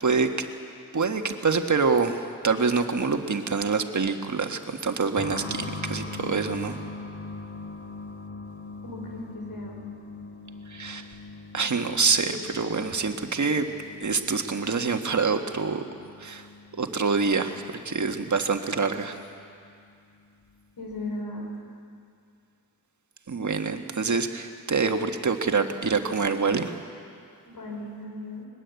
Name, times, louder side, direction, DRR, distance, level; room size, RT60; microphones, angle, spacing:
voice 1, 0.0-0.5 0.9-6.8 10.7-11.1 11.5-13.7 14.0-15.8 16.2-16.4 16.8-19.2 23.3-26.7, right 4 dB, 55° right, 5 dB, 1.6 m, -26 dB
sound 1, 5.1-19.6 19.8-19.9 20.9-21.0, left 3 dB, 35° left, 3.5 m, -41 dB
voice 2, 8.8-9.8 20.8-21.4 27.4-28.5, left 2 dB, 80° left, 0 dB, 5.0 m, -36 dB
21.0 x 20.0 x 8.2 m, 2.4 s
wide cardioid pair, 70°, 35 cm